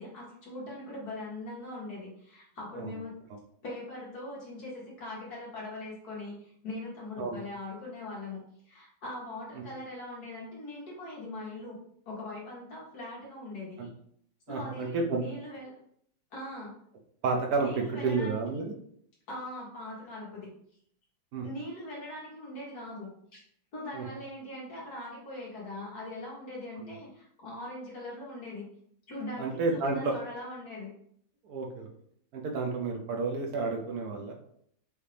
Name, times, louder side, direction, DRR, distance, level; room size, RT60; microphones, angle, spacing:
voice 1, 0.0-3.2 3.6-8.4 8.7-11.8 12.1-13.9 14.5-15.7 16.3-16.8 17.6-18.6 19.3-20.5 21.4-23.4 23.7-28.7 29.1-30.9, left 1 dB, 55° left, -5 dB, 2.0 m, -41 dB
voice 2, 14.5-15.2 17.2-18.7 21.3-21.5 23.9-24.1 29.4-30.2 31.4-31.9 32.3-34.3, right 3 dB, 65° right, 2 dB, 1.0 m, -30 dB
4.9 x 2.8 x 3.3 m, 0.66 s
omnidirectional pair, 2.1 m